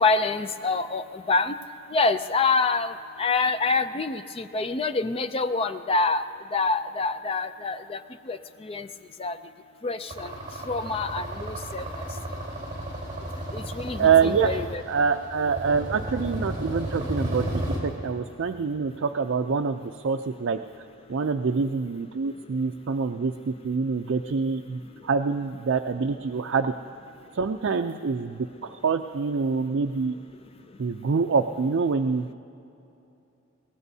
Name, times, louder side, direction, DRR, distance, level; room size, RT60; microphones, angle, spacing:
voice 1, 0.0-1.5 1.9-2.9 3.2-6.2 6.5-8.0 8.3-8.9 9.2-9.4 9.8-10.3 10.7-11.8 13.5-14.8, left 3 dB, 25° left, 11 dB, 0.4 m, -26 dB
sound 1, 10.1-17.8, right 1 dB, 20° right, 3.8 m, -33 dB
voice 2, 14.0-14.5 14.9-20.6 21.1-26.7 27.3-30.1 30.8-32.3, right 5 dB, 60° right, 4 dB, 0.4 m, -26 dB
23.0 x 18.5 x 2.7 m, 2.9 s
head